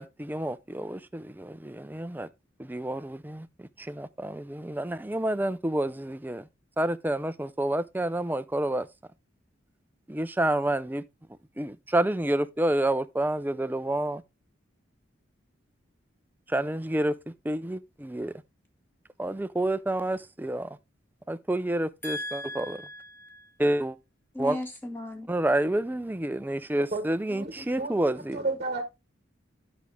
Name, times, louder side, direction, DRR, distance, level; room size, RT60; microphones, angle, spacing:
voice 1, 0.0-2.3 2.6-6.5 6.8-8.9 10.1-11.0 11.6-14.2 16.5-18.3 19.2-20.8 21.3-22.8 23.6-24.0 24.4-24.6 25.3-28.4, right 1 dB, 10° right, 0.4 m, -29 dB
voice 2, 22.0-23.5 24.3-25.3, left 1 dB, 10° left, 1.9 m, -37 dB
voice 3, 26.9-28.8, right 3 dB, 35° right, 1.2 m, -33 dB
11.0 x 6.2 x 3.3 m
head